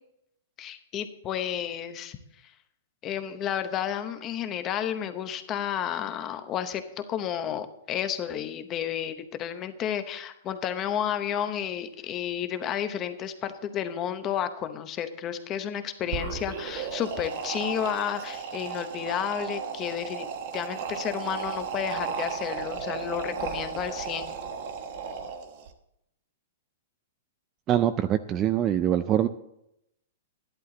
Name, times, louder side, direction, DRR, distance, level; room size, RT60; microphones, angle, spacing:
voice 1, 0.6-2.2 3.0-6.8 7.1-20.3 20.5-24.4, left 9 dB, 20° left, 9 dB, 0.8 m, -31 dB
sound 1, 16.0-25.7, right 6 dB, 40° right, 1.2 m, -35 dB
voice 2, 27.7-29.3, right 11 dB, 20° right, 11 dB, 0.4 m, -24 dB
13.0 x 11.5 x 3.9 m, 0.79 s
hypercardioid pair, 170°, 0 cm